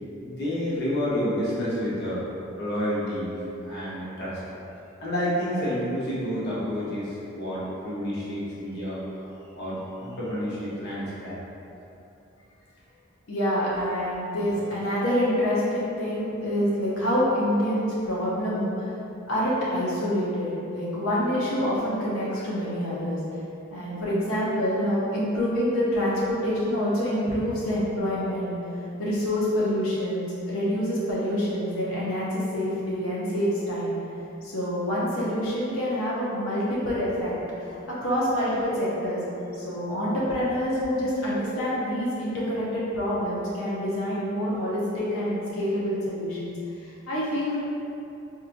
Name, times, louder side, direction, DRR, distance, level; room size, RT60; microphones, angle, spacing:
voice 1, 0.2-2.3 2.6-4.4 5.0-11.4, equal, 50° left, -8 dB, 0.8 m, -29 dB
voice 2, 13.3-18.9 19.3-23.2 23.7-28.5 29.0-33.9 34.4-37.3 37.6-39.2 39.6-46.5 46.8-47.6, equal, 85° left, -7 dB, 0.7 m, -26 dB
4.4 x 2.4 x 2.5 m, 2.9 s
head